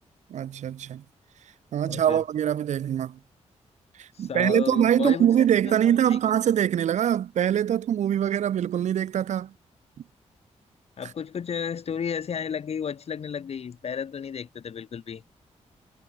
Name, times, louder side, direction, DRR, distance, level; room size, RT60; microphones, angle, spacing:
voice 1, 0.3-1.0 1.7-3.2 4.0-9.5, right 10 dB, 75° right, 0.7 m, -23 dB
voice 2, 1.8-2.2 4.1-6.2 11.0-15.2, left 7 dB, 55° left, 1.6 m, -33 dB
cardioid pair, 100°, 12 cm